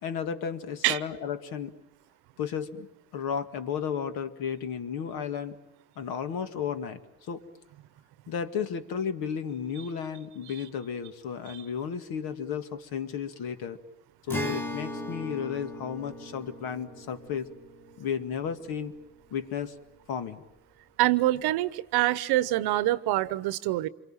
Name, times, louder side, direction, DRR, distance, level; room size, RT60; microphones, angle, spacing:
voice 1, 0.0-1.7 2.4-2.9 3.1-5.6 6.0-7.4 8.3-13.8 14.3-17.5 18.0-18.9 19.3-19.7 20.1-20.4, left 7 dB, 55° left, 9 dB, 2.1 m, -33 dB
Acoustic guitar, 14.3-19.8, left 1 dB, 5° left, 1.6 m, -39 dB
voice 2, 21.0-23.9, right 16 dB, 60° right, 16 dB, 1.0 m, -25 dB
27.5 x 23.5 x 9.0 m, 0.87 s
cardioid pair, 120°, 43 cm